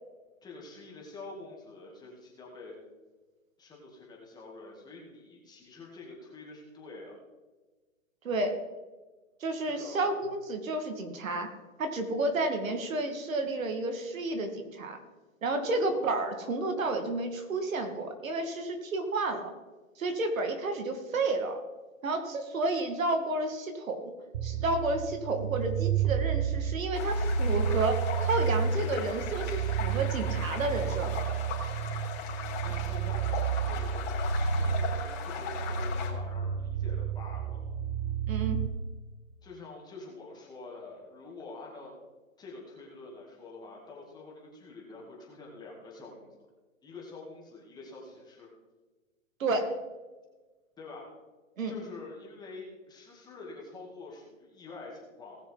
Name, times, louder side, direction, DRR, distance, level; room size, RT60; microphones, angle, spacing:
voice 1, 0.4-2.8 3.6-7.2 9.5-10.0 15.7-16.0 32.6-37.7 39.4-41.9 42.4-46.3 46.8-48.5 50.8-51.1 51.7-55.4, left 3 dB, 10° left, -3 dB, 2.4 m, -46 dB
voice 2, 8.2-8.6 9.4-11.5 11.8-15.0 15.4-19.5 20.0-21.6 22.0-24.1 24.4-31.2 38.3-38.6 49.4-49.8 51.6-51.7, right 2 dB, 75° right, 6 dB, 2.2 m, -31 dB
sound 1, 24.3-38.7, right 6 dB, 30° right, 0.8 m, -31 dB
sound 2, 26.9-36.1, left 6 dB, 30° left, 3.3 m, -39 dB
19.0 x 6.6 x 4.0 m, 1.2 s
hypercardioid pair, 150°, 41 cm